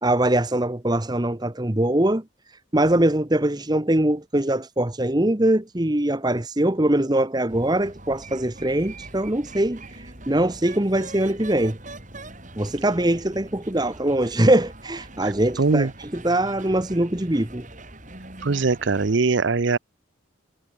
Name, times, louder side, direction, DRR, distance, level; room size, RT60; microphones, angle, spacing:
voice 1, 0.0-2.2 2.7-9.8 10.3-11.8 12.6-15.9 16.1-17.7, right 1 dB, 20° right, 1.1 m, -22 dB
sound 1, 7.5-19.2, right 2 dB, 35° right, 6.6 m, -42 dB
voice 2, 15.2-15.9 18.4-19.8, right 4 dB, 60° right, 0.7 m, -22 dB
head